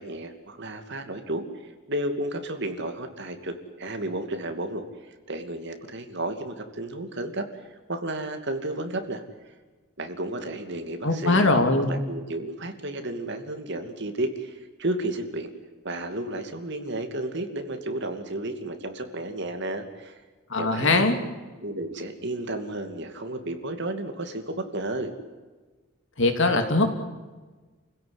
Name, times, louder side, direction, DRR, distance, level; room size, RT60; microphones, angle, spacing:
voice 1, 0.0-9.2 10.0-11.5 11.9-15.5 15.8-20.2 20.6-21.1 21.6-25.1, right 1 dB, 50° right, 6 dB, 2.6 m, -32 dB
voice 2, 11.0-11.9 20.5-21.2 26.2-26.9, left 2 dB, 55° left, 5 dB, 3.1 m, -21 dB
29.5 x 16.5 x 9.7 m, 1.3 s
head